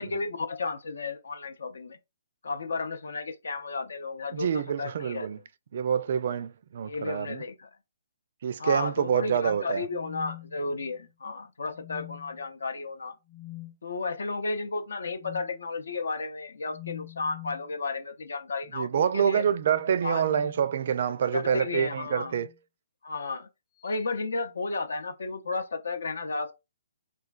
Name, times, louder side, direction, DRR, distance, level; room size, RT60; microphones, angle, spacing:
voice 1, 0.0-2.0 2.4-5.3 6.8-7.7 8.6-13.1 13.8-19.4 20.0-20.2 21.3-22.3 23.0-23.5 23.8-26.5, left 3 dB, 80° left, 0.5 m, -33 dB
voice 2, 4.3-5.4 5.7-7.4 8.4-9.9 18.7-22.5, right 8 dB, 55° right, 0.3 m, -27 dB
sound 1, 9.8-11.1 11.7-12.5 13.3-13.8 15.2-15.5 16.7-17.7 19.2-21.0 22.1-22.6 23.8-24.1, left 19 dB, 15° left, 0.5 m, -46 dB
3.1 x 2.4 x 2.4 m
hypercardioid pair, 145°, 0 cm